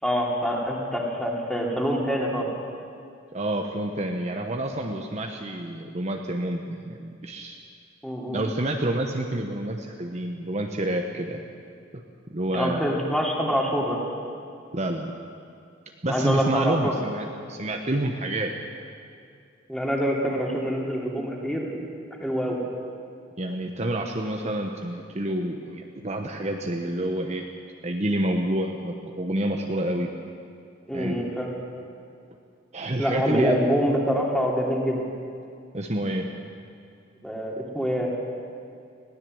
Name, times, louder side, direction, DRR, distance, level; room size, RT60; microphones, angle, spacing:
voice 1, 0.0-2.5 8.0-8.4 12.5-14.0 16.0-16.9 19.7-21.8 22.2-22.6 30.9-31.5 33.0-35.0 37.2-38.1, equal, 5° left, -2 dB, 3.0 m, -25 dB
voice 2, 3.3-7.6 8.3-11.4 11.9-12.0 12.3-12.9 14.7-15.1 16.0-18.5 23.4-27.5 27.8-30.1 30.9-31.2 32.7-33.6 35.7-36.3, right 1 dB, 35° right, 3 dB, 1.1 m, -28 dB
21.0 x 16.5 x 7.9 m, 2.4 s
head